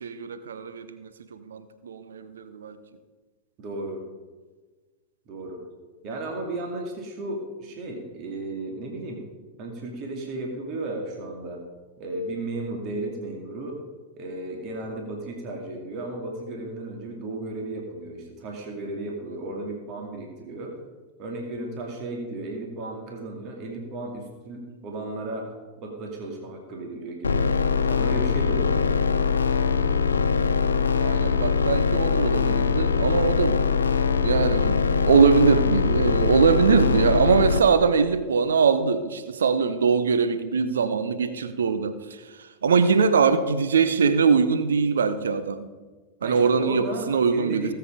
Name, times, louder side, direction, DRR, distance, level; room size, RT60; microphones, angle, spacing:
voice 1, 0.0-2.8 31.0-33.6 34.2-42.0 42.6-45.7 46.2-47.7, right 5 dB, 65° right, 11 dB, 0.9 m, -22 dB
voice 2, 3.6-4.0 5.3-5.6 6.0-9.2 9.6-11.6 12.0-13.8 14.2-20.8 21.2-27.5 27.9-29.1 46.2-47.7, right 2 dB, 40° right, 1 dB, 2.5 m, -34 dB
sound 1, 27.2-37.6, left 6 dB, 70° left, 1.0 m, -22 dB
18.0 x 8.1 x 5.1 m, 1.3 s
figure-of-eight pair, 90°, 0 cm